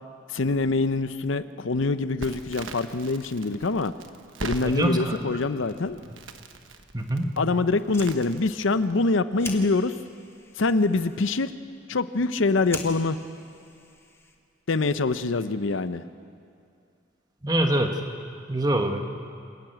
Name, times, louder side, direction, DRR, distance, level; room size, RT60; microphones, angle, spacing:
voice 1, 0.3-3.9 4.4-6.0 7.4-9.9 10.6-11.5 11.9-13.2 14.7-16.0, left 3 dB, 75° left, 12 dB, 0.7 m, -24 dB
Crackle, 2.2-9.0, right 3 dB, 80° right, 1.2 m, -41 dB
voice 2, 4.6-5.4 6.9-7.3 17.4-18.0 18.5-19.0, right 1 dB, 20° right, 4 dB, 1.3 m, -24 dB
Fire, 7.7-14.6, left 3 dB, 10° left, 1.3 m, -44 dB
27.5 x 10.5 x 9.0 m, 2.4 s
head